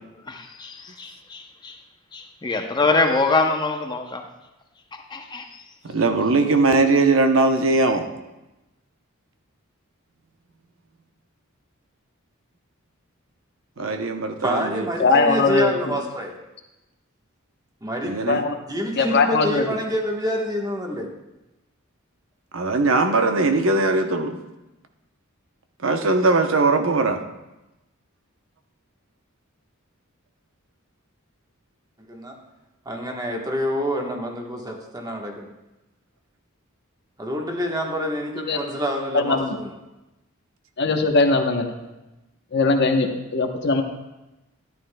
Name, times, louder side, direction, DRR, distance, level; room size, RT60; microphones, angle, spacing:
voice 1, 0.2-1.8 2.1-4.2 4.9-5.6, left 3 dB, 20° left, 4 dB, 0.6 m, -24 dB
voice 2, 5.9-8.1 13.8-14.9 18.0-18.4 22.5-24.4 25.8-27.2, right 3 dB, 70° right, 6 dB, 0.8 m, -20 dB
voice 3, 14.4-16.4 17.8-18.2 18.7-21.1 32.0-32.4 32.8-35.5 37.2-39.7, equal, 20° right, 1 dB, 1.2 m, -27 dB
voice 4, 15.0-16.0 18.3-18.5 18.9-19.6 38.5-38.6 39.1-39.6 40.8-41.7 42.5-43.8, left 3 dB, 55° left, 4 dB, 0.9 m, -20 dB
13.0 x 11.0 x 2.2 m, 0.99 s
head